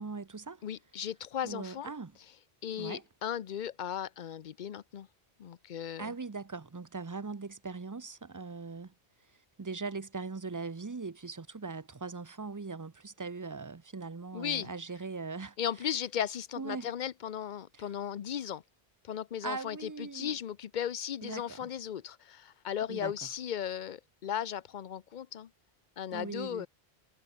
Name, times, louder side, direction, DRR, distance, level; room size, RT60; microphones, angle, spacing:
voice 1, 0.0-0.6 1.4-2.2 2.8-3.0 6.0-8.9 9.6-15.6 16.6-16.9 17.7-17.9 19.4-20.4 21.2-21.7 22.9-23.1 26.1-26.7, right 4 dB, 25° right, 0.5 m, -40 dB
voice 2, 0.6-1.9 2.6-5.1 5.4-6.1 14.3-14.7 15.6-18.6 19.0-25.5 26.0-26.7, left 9 dB, 50° left, 0.7 m, -36 dB
omnidirectional pair, 1.1 m